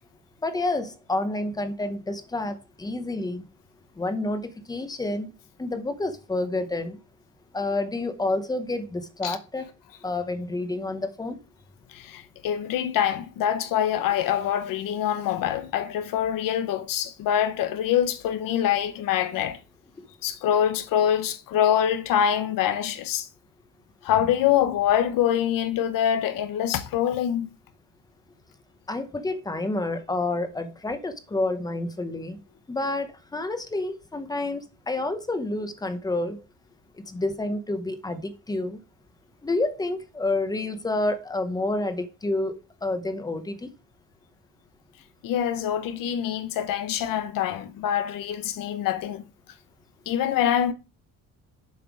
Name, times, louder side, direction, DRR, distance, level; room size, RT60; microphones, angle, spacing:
voice 1, 0.4-3.5 4.0-5.3 5.6-7.0 7.5-9.7 10.0-11.4 20.0-20.1 28.9-32.4 32.7-36.4 37.1-38.8 39.4-43.7, left 2 dB, 10° left, 0.8 m, -29 dB
voice 2, 11.9-19.6 20.2-23.3 24.0-27.5 45.2-49.2 50.1-50.7, left 10 dB, 85° left, 1.0 m, -25 dB
7.3 x 5.6 x 4.9 m
cardioid pair, 165°, 32 cm